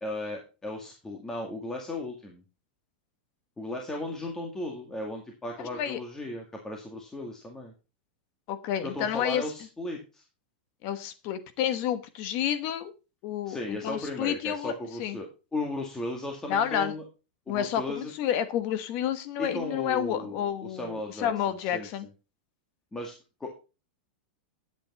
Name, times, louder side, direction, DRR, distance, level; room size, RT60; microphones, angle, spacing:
voice 1, 0.0-2.4 3.6-7.7 8.8-10.2 13.5-17.0 17.5-18.1 19.4-21.3 21.7-21.9 22.9-23.1 23.4-23.5, left 2 dB, 10° left, 2 dB, 1.9 m, -36 dB
voice 2, 5.6-6.0 8.5-9.4 10.8-12.9 13.2-14.7 15.0-15.2 16.5-16.9 17.5-22.1, left 10 dB, 45° left, 12 dB, 1.1 m, -30 dB
10.5 x 8.4 x 4.1 m, 0.31 s
supercardioid pair, 150°, 5 cm